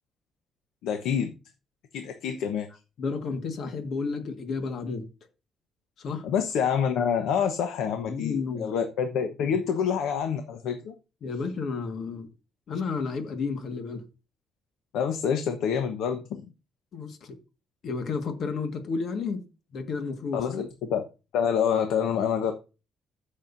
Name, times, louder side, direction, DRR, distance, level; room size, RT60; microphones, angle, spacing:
voice 1, 0.8-1.3 1.9-2.7 6.2-10.9 14.9-16.4 20.3-21.0 21.3-22.5, left 7 dB, 85° left, 1.1 m, -27 dB
voice 2, 3.0-5.1 6.0-6.2 8.0-8.7 9.0-9.1 11.2-12.3 12.7-14.0 16.9-17.4 17.8-19.4 19.7-20.6, left 4 dB, 65° left, 1.7 m, -32 dB
15.5 x 6.4 x 2.7 m
cardioid pair, 90°, 0 cm